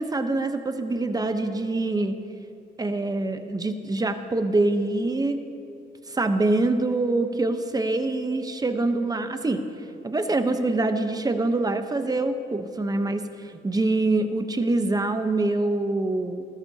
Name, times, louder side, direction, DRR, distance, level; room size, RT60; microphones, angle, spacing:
voice 1, 0.0-2.2 2.8-5.4 6.1-9.6 10.0-16.5, right 2 dB, 20° right, 7 dB, 0.9 m, -25 dB
19.0 x 13.0 x 2.9 m, 2.7 s
cardioid pair, 90°, 20 cm